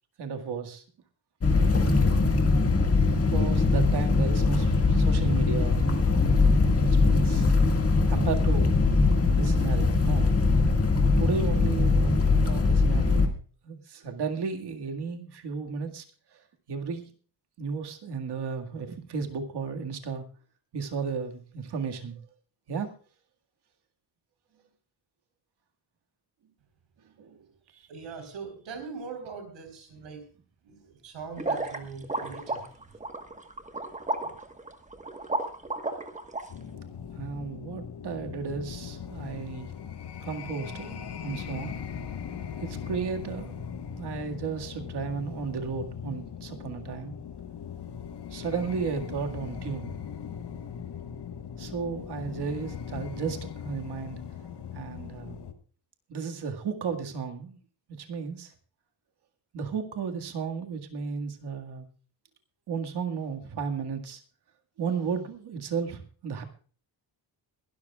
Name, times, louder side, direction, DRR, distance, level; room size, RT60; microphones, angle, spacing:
voice 1, 0.2-0.8 2.9-5.9 6.8-7.5 8.1-8.7 9.2-10.4 11.2-12.1 12.5-13.4 13.6-16.0 16.7-17.1 17.6-20.2 20.7-22.2 22.7-22.9 27.2-27.5 34.2-34.3 37.1-39.7 40.2-41.7 42.6-43.6 43.9-47.1 48.3-49.9 51.6-54.2 54.7-55.4 56.1-57.6 58.0-58.5 59.5-61.9 62.7-64.2 64.8-66.4, right 5 dB, 60° right, 4 dB, 2.0 m, -34 dB
sound 1, 1.4-13.3, left 3 dB, 30° left, 1.9 m, -22 dB
voice 2, 27.7-30.2 30.6-32.7, right 5 dB, 75° right, 6 dB, 4.2 m, -41 dB
sound 2, 31.4-36.4, right 2 dB, 15° right, 1.3 m, -32 dB
sound 3, 36.5-55.5, left 7 dB, 60° left, 1.5 m, -39 dB
22.0 x 13.0 x 2.4 m, 0.40 s
wide cardioid pair, 145°, 46 cm